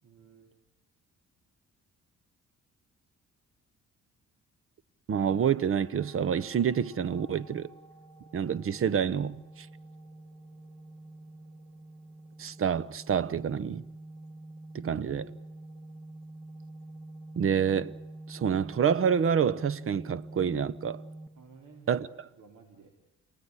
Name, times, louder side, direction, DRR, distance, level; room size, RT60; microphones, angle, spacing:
voice 1, 0.0-0.5 14.8-15.3 21.3-22.1 22.4-22.9, right 5 dB, 75° right, 4.1 m, -54 dB
voice 2, 5.1-7.7 8.3-9.7 12.4-13.8 14.7-15.3 17.4-17.9 18.3-21.0 21.9-22.1, right 7 dB, 45° right, 0.9 m, -27 dB
sound 1, 5.3-21.3, right 2 dB, 5° left, 2.3 m, -47 dB
28.5 x 18.5 x 9.9 m
cardioid pair, 90°, 30 cm